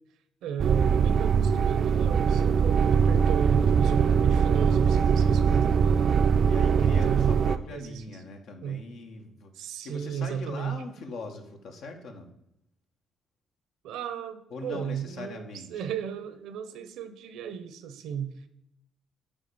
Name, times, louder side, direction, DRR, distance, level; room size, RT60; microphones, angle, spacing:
voice 1, 0.4-6.0 6.7-8.2 8.6-8.8 9.5-10.8 13.8-18.3, right 8 dB, 85° right, 11 dB, 0.8 m, -34 dB
sound 1, 0.6-7.6, right 6 dB, 55° right, 0.4 m, -22 dB
voice 2, 5.1-5.9 6.4-12.3 14.5-15.8, left 3 dB, 80° left, 4 dB, 1.4 m, -41 dB
8.9 x 3.7 x 6.9 m, 0.80 s
cardioid pair, 90°, 0 cm